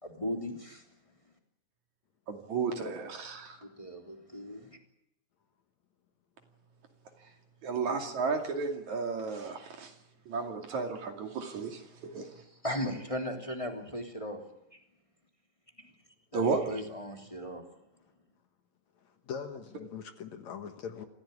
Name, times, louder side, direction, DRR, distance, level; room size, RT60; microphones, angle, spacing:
voice 1, 0.0-0.8 3.6-4.8 12.2-12.3 12.6-14.4 14.7-14.8 15.8-15.9 16.3-17.6, equal, 10° left, 2.9 m, -37 dB
voice 2, 2.3-3.6 7.6-9.9 10.3-12.3 16.3-16.6, right 4 dB, 60° right, 3.8 m, -33 dB
voice 3, 19.0-21.1, left 7 dB, 60° left, 2.4 m, -42 dB
27.5 x 16.0 x 9.7 m
omnidirectional pair, 3.9 m